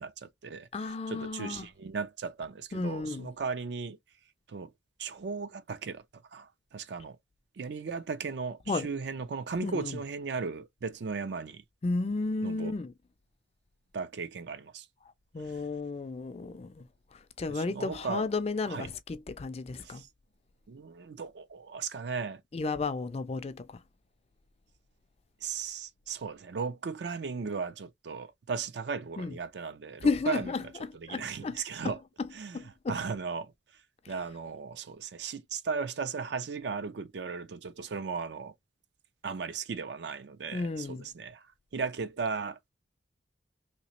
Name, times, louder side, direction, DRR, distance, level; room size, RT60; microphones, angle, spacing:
voice 1, 0.0-0.7 1.1-4.0 4.5-4.7 5.0-6.0 6.3-7.2 7.6-11.6 12.4-12.7 13.9-14.9 17.5-18.3 18.7-18.9 19.8-20.1 20.7-22.4 25.4-30.5 31.0-32.0 32.3-32.6 32.9-33.5 34.1-38.5 39.2-41.4 41.7-42.7, right 5 dB, 60° right, 0.4 m, -36 dB
voice 2, 0.7-1.7 2.7-3.3 8.7-8.9 9.6-10.0 11.8-12.9 15.3-16.8 17.1-20.0 22.5-23.8 29.2-29.3 30.0-32.3 32.5-33.0 34.0-34.1 40.5-41.1, left 3 dB, 35° left, 0.4 m, -33 dB
3.1 x 3.0 x 2.9 m
head